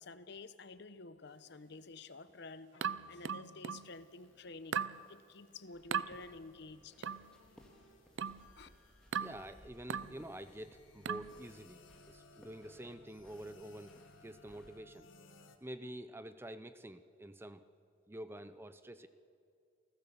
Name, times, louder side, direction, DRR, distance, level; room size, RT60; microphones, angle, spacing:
voice 1, 0.0-2.7 3.1-4.8 5.1-7.1 7.4-7.5 8.5-8.7, left 3 dB, 60° left, 13 dB, 0.9 m, -51 dB
sound 1, 2.7-15.6, left 3 dB, 90° left, 1.8 m, -63 dB
sound 2, 2.8-3.9 4.7-5.0 5.9-6.1 7.0-7.3 8.2-8.5 9.1-9.4 9.9-10.2 11.0-11.3, right 7 dB, 70° right, 0.6 m, -37 dB
sound 3, 5.7-14.8, equal, 5° left, 2.0 m, -64 dB
voice 2, 9.1-13.9 14.2-15.1 15.6-17.6 18.1-19.1, right 1 dB, 10° right, 11 dB, 0.6 m, -48 dB
28.5 x 16.0 x 6.9 m, 2.3 s
head